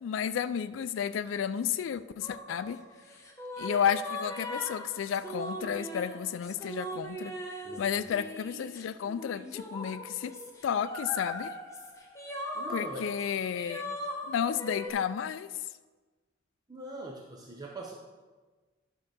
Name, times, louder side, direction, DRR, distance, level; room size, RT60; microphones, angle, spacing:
voice 1, 0.0-2.8 3.6-10.3 10.6-11.5 12.7-14.0 14.3-15.5, left 8 dB, 75° left, 12 dB, 0.3 m, -32 dB
sound 1, 2.2-14.9, left 1 dB, 15° left, 1.1 m, -40 dB
voice 2, 12.5-13.2 16.7-17.9, right 1 dB, 20° right, -1 dB, 0.7 m, -42 dB
10.5 x 3.7 x 6.1 m, 1.3 s
head